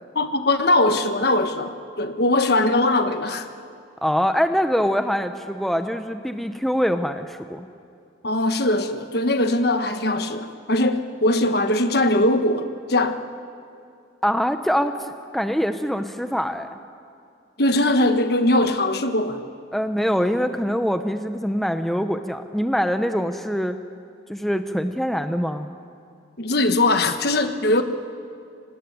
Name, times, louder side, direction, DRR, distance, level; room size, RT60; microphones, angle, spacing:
voice 1, 0.1-3.5 8.2-13.2 17.6-19.4 26.4-27.8, left 1 dB, 55° left, 8 dB, 1.3 m, -21 dB
voice 2, 4.0-7.7 14.2-16.7 19.7-23.8 24.3-25.7, equal, ahead, 8 dB, 0.7 m, -24 dB
25.5 x 18.5 x 9.5 m, 2.4 s
head